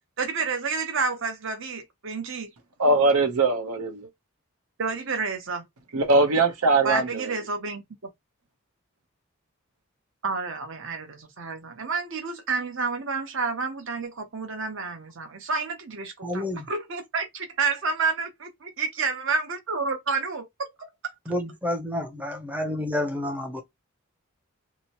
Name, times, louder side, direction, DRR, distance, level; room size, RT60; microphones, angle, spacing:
voice 1, 0.2-2.5 4.8-5.7 6.8-7.8 10.2-20.9, right 4 dB, 60° right, 0.8 m, -29 dB
voice 2, 2.8-4.1 5.9-7.3, right 3 dB, 90° right, 0.8 m, -21 dB
voice 3, 16.2-16.6 21.3-23.6, left 1 dB, 5° right, 0.5 m, -29 dB
2.9 x 2.1 x 2.8 m
head